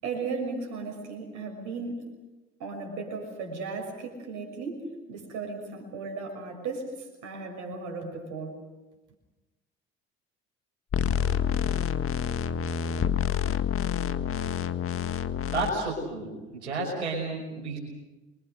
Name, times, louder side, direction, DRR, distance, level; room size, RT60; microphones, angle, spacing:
voice 1, 0.0-2.1 2.6-8.6, right 4 dB, 60° right, 3 dB, 6.5 m, -36 dB
sound 1, 10.9-15.7, left 8 dB, 40° left, 1.8 m, -28 dB
voice 2, 15.5-17.8, right 3 dB, 80° right, -3 dB, 6.0 m, -31 dB
28.0 x 24.0 x 6.6 m, 1.1 s
figure-of-eight pair, 50°, 33 cm